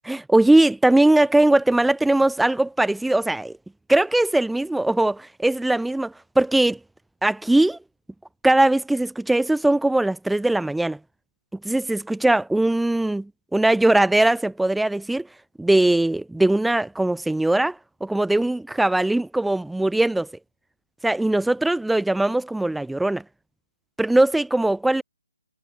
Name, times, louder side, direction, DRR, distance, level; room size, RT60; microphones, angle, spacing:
voice 1, 0.1-3.6 3.9-6.8 7.2-7.8 8.4-11.0 11.6-15.3 15.6-20.3 21.0-23.2 24.0-25.0, right 2 dB, ahead, 3.2 m, -20 dB
figure-of-eight pair, 150°, 0 cm